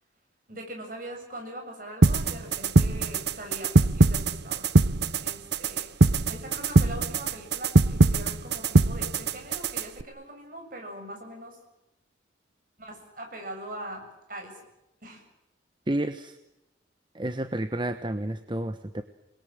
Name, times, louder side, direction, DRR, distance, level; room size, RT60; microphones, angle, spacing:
voice 1, 0.5-4.7 5.2-5.9 6.3-11.6 12.8-14.6 15.0-15.2, right 1 dB, 50° right, 3 dB, 7.6 m, -41 dB
sound 1, 2.0-10.0, right 2 dB, 65° right, 0.9 m, -22 dB
voice 2, 15.9-16.4 17.1-19.0, right 1 dB, 25° right, 10 dB, 1.0 m, -30 dB
29.0 x 21.0 x 7.7 m, 0.93 s
head